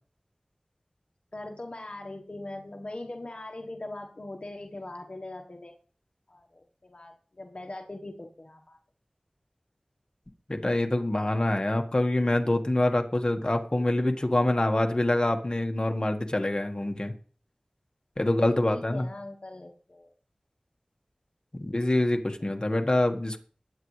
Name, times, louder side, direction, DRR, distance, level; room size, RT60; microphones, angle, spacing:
voice 1, 1.3-5.7 6.3-8.8 18.2-20.1 22.4-22.5, left 2 dB, 55° left, 3 dB, 1.2 m, -41 dB
voice 2, 10.5-17.1 18.2-19.1 21.6-23.4, left 1 dB, 35° left, 4 dB, 1.5 m, -25 dB
21.0 x 8.5 x 3.2 m, 0.43 s
wide cardioid pair, 55°, 2 cm